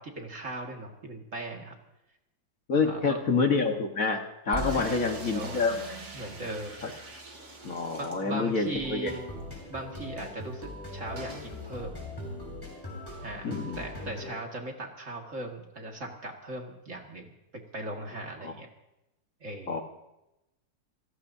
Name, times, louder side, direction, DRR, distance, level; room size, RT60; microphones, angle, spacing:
voice 1, 0.0-1.8 2.8-3.2 4.6-5.6 6.1-6.8 8.0-9.2 9.7-12.0 13.2-17.4 17.7-18.7 19.4-19.8, right 2 dB, 45° right, 1 dB, 2.4 m, -39 dB
voice 2, 2.7-4.2 4.5-5.8 6.8-6.9 7.6-9.1 13.4-13.8 18.4-18.5 19.7-19.8, left 4 dB, 50° left, 3 dB, 1.8 m, -27 dB
sound 1, 4.5-8.3, right 2 dB, 30° right, 0.5 m, -42 dB
sound 2, 4.6-8.7 9.1-9.2 9.4-9.5 11.2-11.5, right 3 dB, 90° right, 3.5 m, -44 dB
sound 3, 8.7-14.4, left 1 dB, 10° left, 7.2 m, -40 dB
29.0 x 17.5 x 2.8 m, 0.91 s
omnidirectional pair, 1.9 m